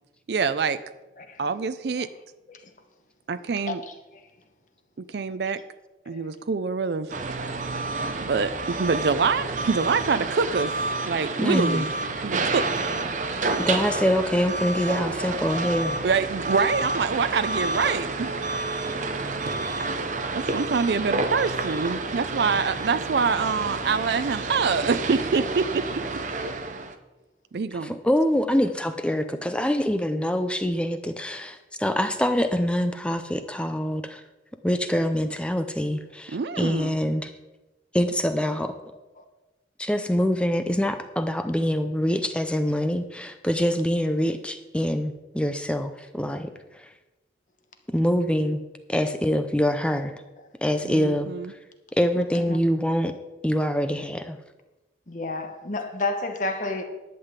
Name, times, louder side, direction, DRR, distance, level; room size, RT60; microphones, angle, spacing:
voice 1, 0.3-0.8 1.4-2.1 3.3-3.8 5.0-5.6 6.1-7.1 8.2-10.7 11.1-11.9 12.2-12.6 16.0-18.4 20.3-26.0 27.5-28.0 36.3-37.0 50.8-51.5, right 5 dB, 65° right, 0.5 m, -25 dB
sound 1, 7.1-26.9, right 3 dB, 45° right, 0.8 m, -29 dB
voice 2, 11.4-11.9 13.6-16.0 27.8-34.2 34.6-37.3 37.9-38.7 39.8-46.5 47.9-48.6 48.9-50.1 50.6-51.3 52.0-53.1 53.4-54.4, equal, 5° left, 0.5 m, -25 dB
voice 3, 55.1-56.8, left 2 dB, 45° left, 1.1 m, -31 dB
11.0 x 5.7 x 8.2 m
head